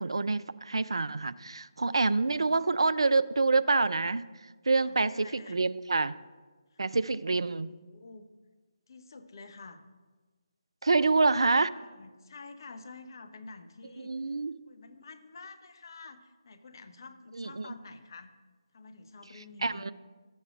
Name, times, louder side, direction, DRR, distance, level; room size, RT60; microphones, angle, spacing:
voice 1, 0.0-4.2 4.7-6.2 6.8-7.7 10.8-11.7 14.0-14.6 17.4-17.6 19.6-19.9, right 3 dB, 70° right, 15 dB, 0.3 m, -27 dB
voice 2, 4.7-5.7 6.7-6.8 7.9-8.3 8.9-9.8 10.9-11.1 11.4-14.4 14.7-18.3 18.7-19.9, left 3 dB, 50° left, 8 dB, 0.7 m, -49 dB
13.0 x 7.2 x 2.4 m, 1.3 s
figure-of-eight pair, 150°, 3 cm